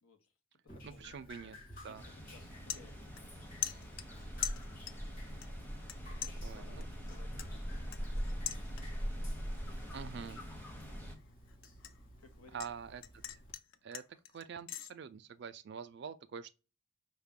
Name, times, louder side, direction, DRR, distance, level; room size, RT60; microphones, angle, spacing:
voice 1, 0.0-4.5 4.8-4.9 6.1-8.5 12.2-12.7, left 3 dB, 90° left, 0.9 m, -62 dB
Drip, 0.7-13.5, left 1 dB, 45° left, 1.9 m, -56 dB
voice 2, 0.8-1.6 1.8-2.0 6.4-6.9 9.9-10.5 12.5-13.0 13.8-14.0 14.3-16.5, right 6 dB, 55° right, 0.4 m, -45 dB
sound 1, 1.8-2.0 2.3-3.4 3.6-5.1 5.4-6.0 6.2-9.1 9.5-9.9 10.3-12.7 13.0-14.9, left 12 dB, 65° left, 0.4 m, -43 dB
sound 2, 2.0-11.2, equal, 10° left, 0.7 m, -42 dB
5.5 x 2.2 x 3.5 m
head